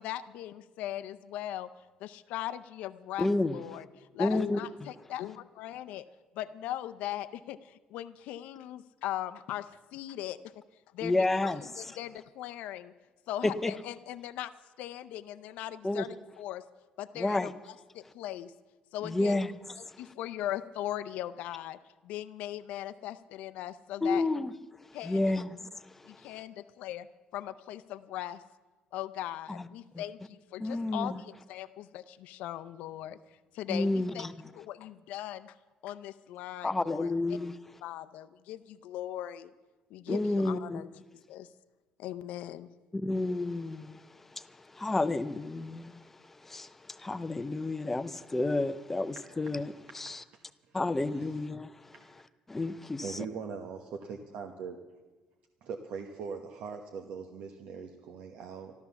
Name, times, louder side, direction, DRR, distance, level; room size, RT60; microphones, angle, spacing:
voice 1, 0.0-1.7 2.0-6.1 6.4-10.4 10.9-11.1 11.4-12.9 13.3-14.5 14.8-16.6 17.0-18.5 18.9-19.4 19.8-21.8 22.0-24.4 24.9-25.2 26.1-27.1 27.3-28.4 28.9-33.2 33.5-34.3 34.5-35.5 35.8-37.1 37.8-39.5 39.9-40.9 41.3-41.5 42.0-42.7, left 13 dB, 85° left, 0.5 m, -39 dB
voice 2, 3.2-3.6 4.2-4.6 11.0-11.9 13.4-13.7 15.8-16.0 17.2-17.5 19.0-19.5 19.9-20.0 24.0-24.5 25.0-25.6 25.9-26.2 29.5-29.7 29.9-30.0 30.6-31.2 33.7-34.3 36.6-37.6 40.1-40.8 42.9-44.0 44.3-50.2 50.7-51.9 52.5-53.2, left 2 dB, 10° left, 0.5 m, -31 dB
voice 3, 53.0-54.8 55.6-58.7, right 6 dB, 70° right, 1.1 m, -40 dB
13.5 x 13.0 x 7.0 m
cardioid pair, 165°, 2 cm